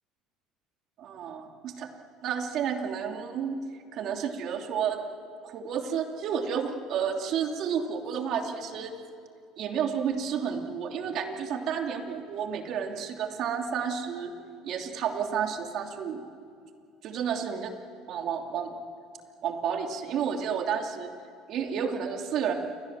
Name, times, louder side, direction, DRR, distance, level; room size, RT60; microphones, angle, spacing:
voice 1, 1.0-1.9 2.2-3.6 3.9-5.0 5.4-9.0 9.6-14.3 14.6-16.2 17.0-17.7 18.1-18.7 19.4-21.1 21.5-22.5, right 7 dB, 55° right, 3 dB, 2.9 m, -31 dB
28.5 x 23.5 x 7.5 m, 2.3 s
supercardioid pair, 110°, 0 cm